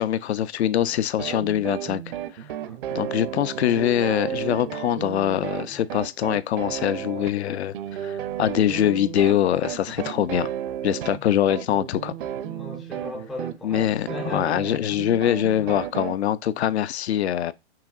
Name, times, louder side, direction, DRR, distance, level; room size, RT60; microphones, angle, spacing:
voice 1, 0.0-2.0 2.3-2.4 2.9-7.7 8.0-10.5 10.8-12.1 13.6-17.5, left 11 dB, 75° left, 0.5 m, -23 dB
sound 1, 1.2-16.1, right 10 dB, 50° right, 0.6 m, -33 dB
voice 2, 12.4-15.0 15.6-15.7, left 3 dB, ahead, 0.3 m, -37 dB
5.7 x 2.6 x 2.4 m
hypercardioid pair, 135°, 33 cm